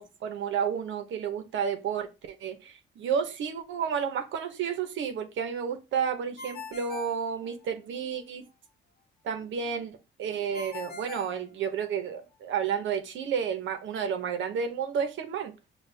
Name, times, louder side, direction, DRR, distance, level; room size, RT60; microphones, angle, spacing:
voice 1, 0.0-8.4 9.2-15.5, right 7 dB, 75° right, 0.9 m, -31 dB
Ringtone, 6.4-8.0 10.5-12.2, left 4 dB, 50° left, 0.8 m, -43 dB
6.5 x 2.4 x 3.3 m
cardioid pair, 90°, 20 cm